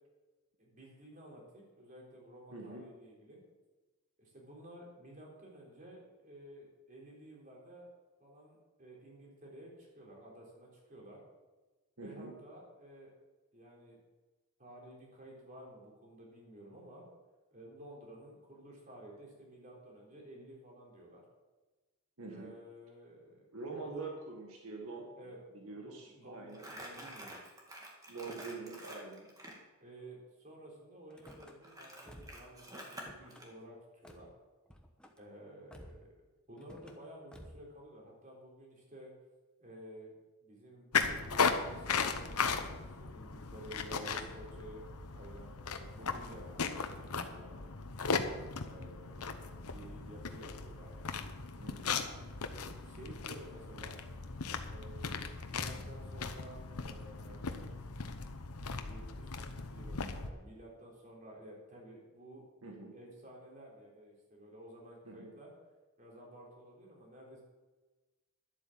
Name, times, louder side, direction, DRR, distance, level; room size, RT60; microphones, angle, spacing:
voice 1, 0.6-3.4 4.2-7.9 8.2-11.2 12.0-13.1 13.5-14.0 14.6-17.1 17.5-21.2 22.3-24.0 25.2-27.4 29.8-33.8 34.0-34.3 35.2-36.1 36.5-39.1 39.6-40.1 40.4-44.8 45.1-47.7 48.6-51.0 52.5-54.0 54.7-57.8 58.8-62.4 62.9-65.5 66.0-67.4, right 1 dB, 35° right, -2 dB, 3.7 m, -53 dB
voice 2, 2.5-2.9 12.0-12.3 22.2-22.5 23.5-25.1 25.5-26.7 28.1-29.3 43.9-44.2 51.6-52.0 62.6-62.9 65.0-65.3, right 3 dB, 80° right, 1 dB, 1.9 m, -45 dB
Crumpling crinkling, 26.5-29.6 31.2-33.5, right 1 dB, 15° right, 2.0 m, -48 dB
Car / Slam, 31.1-31.6 32.0-32.5 32.8-33.4 34.0-34.3 34.7-35.2 35.7-36.1 36.6-37.0 37.3-37.7, equal, 5° left, 1.0 m, -54 dB
sound 1, 40.9-60.3, left 5 dB, 85° left, 1.0 m, -37 dB
11.5 x 8.2 x 7.4 m, 1.2 s
head